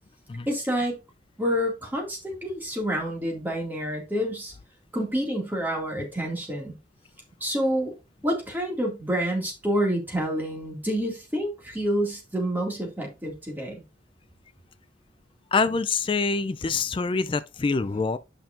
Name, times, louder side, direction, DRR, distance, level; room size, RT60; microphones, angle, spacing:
voice 1, 0.5-1.0 1.4-4.5 4.9-6.7 7.4-7.9 8.2-13.8, equal, 10° right, 2.2 m, -28 dB
voice 2, 15.5-18.2, left 4 dB, 25° left, 0.3 m, -25 dB
9.0 x 5.9 x 2.5 m
head